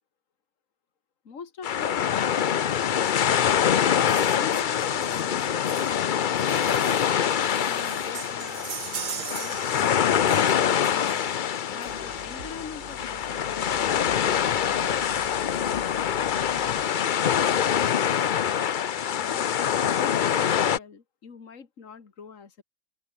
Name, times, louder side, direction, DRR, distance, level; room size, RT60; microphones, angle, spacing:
voice 1, 1.2-2.4 2.9-3.6 3.8-7.0 7.4-15.9 16.4-16.8 17.3-18.7 19.1-22.6, left 5 dB, 50° left, 2.4 m, -45 dB
sound 1, 1.6-20.8, left 8 dB, 75° left, 0.4 m, -25 dB
sound 2, 4.1-12.4 13.5-13.6 13.9-14.0 14.2-14.4 14.7-15.3 15.8-15.9, right 8 dB, 80° right, 2.0 m, -41 dB
sound 3, 11.8-16.9, right 2 dB, 45° right, 4.3 m, -47 dB
open air
omnidirectional pair, 1.7 m